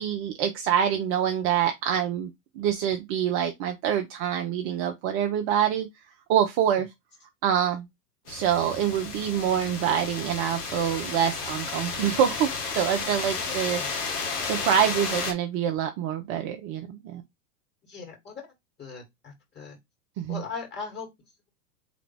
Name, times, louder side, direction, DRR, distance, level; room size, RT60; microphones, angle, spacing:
voice 1, 0.0-2.3 2.6-5.9 6.3-6.9 7.4-7.9 8.3-14.1 14.5-17.2 20.2-20.4, right 9 dB, 25° right, 0.5 m, -26 dB
sound 1, 8.3-15.3, left 4 dB, 70° left, 1.8 m, -32 dB
voice 2, 13.5-13.9 14.2-14.7 17.9-18.4 18.8-19.8 20.3-21.1, left 5 dB, 20° left, 2.4 m, -39 dB
3.9 x 3.4 x 3.3 m
hypercardioid pair, 100°, 49 cm